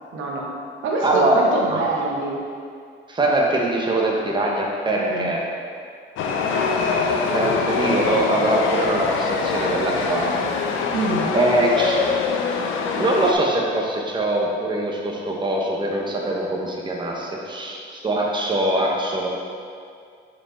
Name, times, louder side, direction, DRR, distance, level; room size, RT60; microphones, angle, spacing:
voice 1, 0.1-0.5 0.8-2.4 5.0-5.3 10.9-11.3, right 3 dB, 80° right, -2 dB, 1.0 m, -25 dB
voice 2, 1.0-1.4 1.7-1.8 3.1-5.4 6.5-6.8 7.3-10.4 11.3-12.0 12.9-19.3, right 1 dB, 25° right, -2 dB, 1.0 m, -22 dB
Chatter / Subway metro underground, 6.2-13.3, left 5 dB, 85° left, 0.6 m, -23 dB
5.3 x 4.8 x 4.3 m, 2.2 s
cardioid pair, 90°, 20 cm